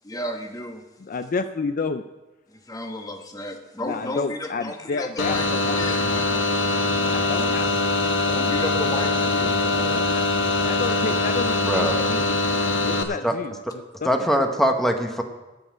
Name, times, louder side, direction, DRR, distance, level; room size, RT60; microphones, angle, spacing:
voice 1, 0.0-0.8 2.7-5.5 5.8-6.4 7.3-7.5 8.3-10.0, left 1 dB, 20° left, 4 dB, 1.2 m, -33 dB
voice 2, 1.0-2.0 3.8-5.8 7.1-7.7 9.8-10.3 10.6-14.1, left 4 dB, 45° left, 9 dB, 0.4 m, -30 dB
sound 1, 5.2-13.0, left 2 dB, 80° left, 1.0 m, -23 dB
voice 3, 11.6-12.0 13.2-13.3 14.0-15.2, equal, ahead, 3 dB, 1.0 m, -22 dB
13.5 x 5.5 x 8.5 m, 1.1 s
head